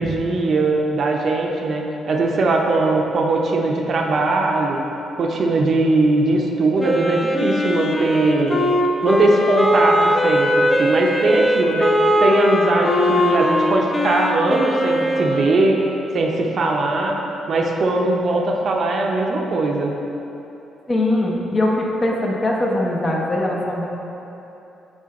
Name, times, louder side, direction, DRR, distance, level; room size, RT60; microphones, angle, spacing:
voice 1, 0.0-4.8 5.2-8.7 9.0-15.8 16.1-17.2 17.5-19.9, right 2 dB, 55° right, 0 dB, 0.6 m, -20 dB
Wind instrument woodwind instrument, 6.8-15.7, left 1 dB, 10° left, 0.6 m, -20 dB
voice 2, 20.9-23.8, left 1 dB, 30° left, -2 dB, 0.9 m, -21 dB
6.2 x 3.8 x 4.2 m, 3.0 s
cardioid pair, 90°, 0 cm